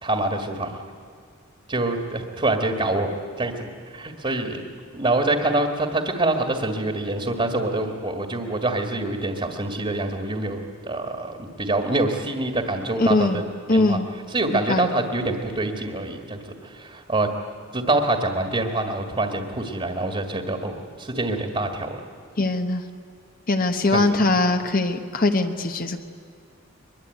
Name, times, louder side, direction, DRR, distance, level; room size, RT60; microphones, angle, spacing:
voice 1, 0.0-0.8 1.7-4.6 4.9-13.4 13.7-14.0 14.3-17.3 17.7-22.0 23.9-24.3, right 2 dB, 30° right, 5 dB, 1.8 m, -25 dB
voice 2, 13.0-13.4 13.7-14.1 14.5-14.9 22.4-22.8 23.5-26.0, left 2 dB, 45° left, 6 dB, 1.1 m, -21 dB
23.0 x 22.0 x 9.2 m, 2.2 s
head